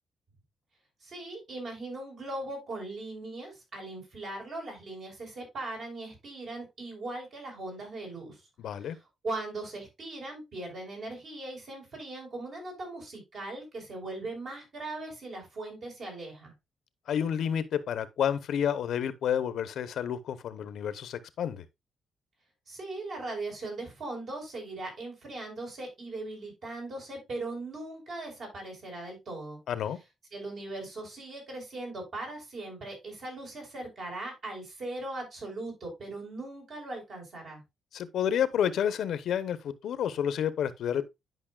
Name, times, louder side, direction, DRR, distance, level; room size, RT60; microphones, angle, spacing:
voice 1, 1.0-8.4 8.8-9.0 9.2-16.5 22.7-29.6 30.3-37.6, right 2 dB, 60° right, 4.9 m, -39 dB
voice 2, 8.6-9.0 17.1-21.6 29.7-30.0 37.9-41.1, left 9 dB, 75° left, 0.8 m, -30 dB
11.0 x 5.4 x 2.3 m
cardioid pair, 105°, 0 cm